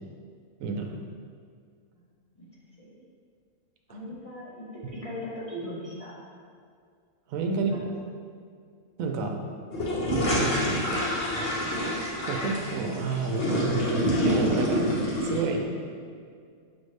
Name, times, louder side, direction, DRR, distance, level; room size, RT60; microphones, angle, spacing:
voice 1, 0.6-0.9 3.9-4.0 7.3-7.7 9.0-9.4 10.3-11.1 12.3-14.9 15.2-15.7, right 4 dB, 75° right, 2 dB, 1.0 m, -29 dB
voice 2, 2.4-2.9 3.9-6.2 7.4-7.9, left 1 dB, 35° left, -9 dB, 0.5 m, -40 dB
sound 1, 9.7-15.4, equal, 55° left, 1.1 m, -27 dB
5.9 x 2.6 x 3.2 m, 2.2 s
omnidirectional pair, 1.4 m